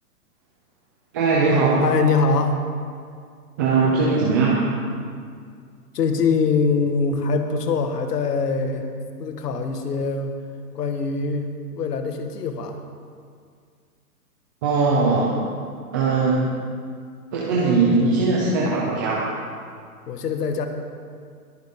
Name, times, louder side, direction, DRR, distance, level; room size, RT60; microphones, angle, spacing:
voice 1, 1.1-1.8 3.6-4.6 14.6-15.3 15.9-16.4 17.3-19.2, right 4 dB, 15° right, -5 dB, 0.5 m, -20 dB
voice 2, 1.8-2.6 5.9-8.9 9.2-10.4 10.7-12.8 20.1-20.7, left 4 dB, 75° left, 6 dB, 1.7 m, -23 dB
21.5 x 9.4 x 3.7 m, 2.2 s
hypercardioid pair, 165°, 47 cm